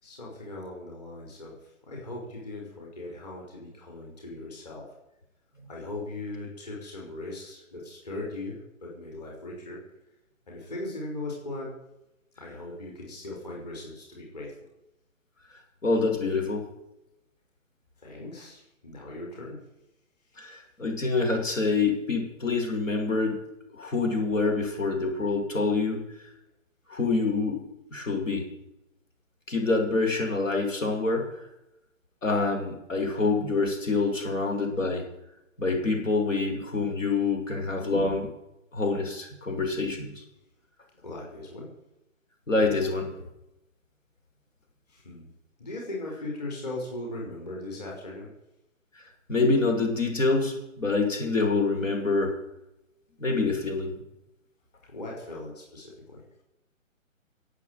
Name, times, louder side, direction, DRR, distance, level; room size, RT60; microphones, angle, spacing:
voice 1, 0.0-4.9 5.7-9.8 10.5-11.7 12.4-14.5 18.0-19.6 41.0-41.7 44.9-45.3 45.6-48.3 54.9-56.2, left 2 dB, 30° left, -2 dB, 5.1 m, -39 dB
voice 2, 15.8-16.7 20.4-23.4 23.8-26.0 26.9-27.6 27.9-28.5 29.5-31.3 32.2-35.0 35.6-38.3 38.7-40.1 42.5-43.1 49.3-52.3 53.2-54.0, left 3 dB, 70° left, 2 dB, 6.2 m, -26 dB
16.0 x 8.5 x 9.5 m, 0.89 s
hypercardioid pair, 175°, 41 cm